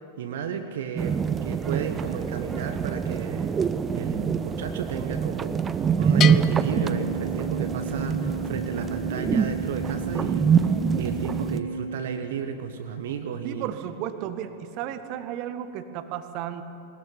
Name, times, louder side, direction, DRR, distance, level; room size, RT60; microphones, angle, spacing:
voice 1, 0.2-3.6 3.9-13.7, right 7 dB, 60° right, 7 dB, 1.3 m, -34 dB
sound 1, 1.0-11.6, right 6 dB, 20° right, 0.8 m, -25 dB
Bell, 6.2-7.9, left 11 dB, 30° left, 0.6 m, -31 dB
Organ, 6.4-12.9, right 3 dB, 80° right, 1.8 m, -35 dB
voice 2, 13.4-16.6, right 10 dB, 40° right, 10 dB, 1.5 m, -33 dB
20.5 x 20.0 x 9.8 m, 2.8 s
figure-of-eight pair, 90°, 0 cm